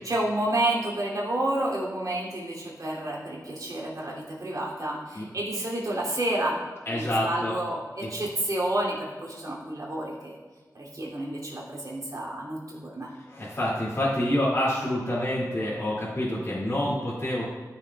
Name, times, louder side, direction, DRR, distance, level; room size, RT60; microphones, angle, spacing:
voice 1, 0.0-6.5 6.9-10.3 10.7-13.1, right 1 dB, 55° right, -5 dB, 2.8 m, -30 dB
voice 2, 6.9-7.6 8.0-8.1 13.2-17.4, left 1 dB, 40° left, -9 dB, 2.4 m, -27 dB
13.5 x 7.0 x 2.4 m, 1.4 s
wide cardioid pair, 65°, 7 cm